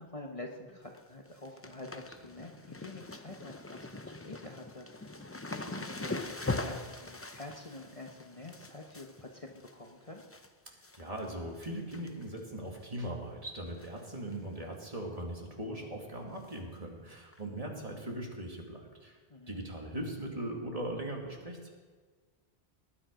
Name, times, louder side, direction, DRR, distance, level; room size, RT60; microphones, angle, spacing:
voice 1, 0.0-10.2 19.3-19.6, left 2 dB, 35° left, 1 dB, 1.1 m, -47 dB
sound 1, 0.7-1.0 1.3-10.5 10.8-11.3 11.6-12.4 12.7-12.8 13.8-14.1 14.3-14.4 14.8-14.9 16.5-16.6 17.3-17.4, left 2 dB, 15° left, 0.6 m, -42 dB
voice 2, 10.7-19.2 19.5-21.7, right 1 dB, 35° right, 0 dB, 2.1 m, -40 dB
19.5 x 9.9 x 5.1 m, 1.4 s
omnidirectional pair, 1.1 m